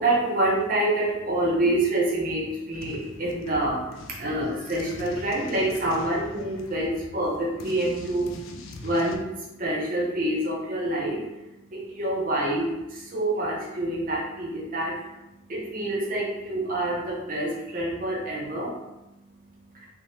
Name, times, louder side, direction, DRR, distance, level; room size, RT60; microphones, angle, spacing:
voice 1, 0.0-19.9, right 1 dB, 40° right, -3 dB, 0.7 m, -27 dB
sound 1, 2.7-9.2, left 2 dB, 75° left, 0.4 m, -43 dB
2.8 x 2.1 x 3.2 m, 0.95 s
head